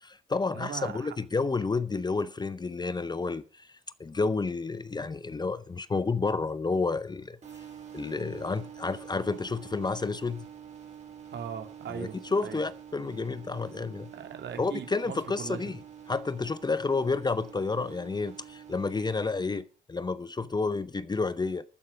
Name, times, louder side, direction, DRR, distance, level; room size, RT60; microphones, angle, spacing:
voice 1, 0.0-7.4 7.9-10.4 11.9-14.1 14.6-15.8 16.1-21.6, left 4 dB, 20° left, 0.6 m, -30 dB
voice 2, 0.5-1.1 11.3-12.6 14.1-15.8, right 7 dB, 65° right, 2.7 m, -39 dB
sound 1, 7.4-19.2, right 8 dB, 35° right, 3.7 m, -47 dB
12.5 x 9.4 x 5.2 m
cardioid pair, 90°, 20 cm